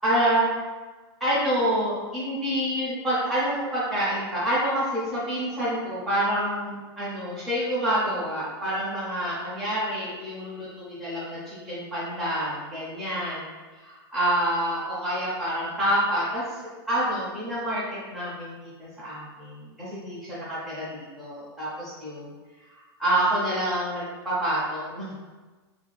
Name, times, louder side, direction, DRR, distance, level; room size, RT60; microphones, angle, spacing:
voice 1, 0.0-0.7 1.2-13.5 13.7-16.6 16.9-22.3 22.7-25.1, right 1 dB, ahead, -11 dB, 0.4 m, -27 dB
2.4 x 2.2 x 3.1 m, 1.3 s
supercardioid pair, 180°, 14 cm